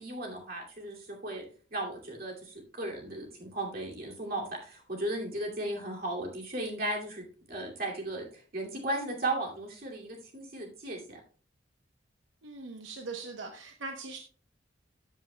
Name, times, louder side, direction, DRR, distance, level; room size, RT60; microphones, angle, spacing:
voice 1, 0.0-11.2, right 1 dB, 50° right, -1 dB, 2.5 m, -36 dB
voice 2, 12.4-14.2, right 3 dB, 80° right, 4 dB, 0.9 m, -41 dB
13.5 x 7.4 x 2.2 m, 0.41 s
head